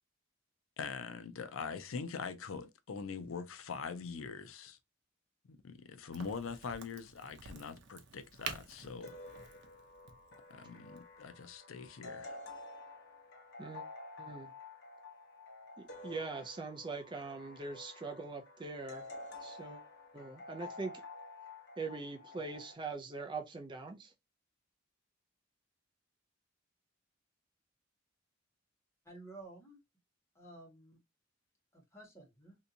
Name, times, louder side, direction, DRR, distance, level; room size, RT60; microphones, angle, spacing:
voice 1, 0.8-4.8 5.5-9.1 10.5-12.4, left 5 dB, 85° left, 0.5 m, -43 dB
Crack, 6.1-11.6, right 6 dB, 60° right, 0.7 m, -49 dB
sound 1, 9.0-22.7, left 2 dB, 55° left, 1.0 m, -50 dB
voice 2, 14.2-14.5 15.8-19.1 19.4-19.8 20.1-21.0 21.8-24.1, right 4 dB, 25° right, 0.5 m, -42 dB
voice 3, 29.0-29.8 30.3-31.0 31.7-32.6, right 2 dB, 15° left, 1.5 m, -53 dB
3.4 x 2.7 x 2.7 m
head